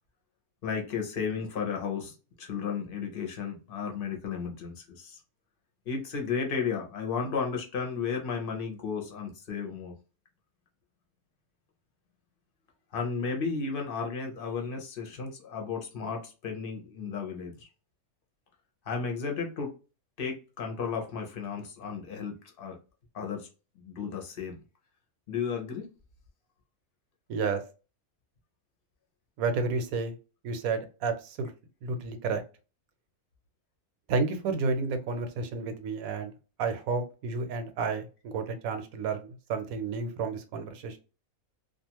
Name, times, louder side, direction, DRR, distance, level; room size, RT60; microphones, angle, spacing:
voice 1, 0.6-5.2 5.9-9.9 12.9-17.7 18.8-19.7 20.2-22.8 23.1-23.5 23.8-24.6 25.3-25.9, left 5 dB, 50° left, 2 dB, 0.8 m, -34 dB
voice 2, 27.3-27.6 29.4-30.1 30.4-31.5 31.8-32.4 34.1-36.3 36.6-41.0, right 4 dB, 75° right, 8 dB, 1.0 m, -31 dB
2.4 x 2.4 x 2.8 m, 0.33 s
omnidirectional pair, 1.5 m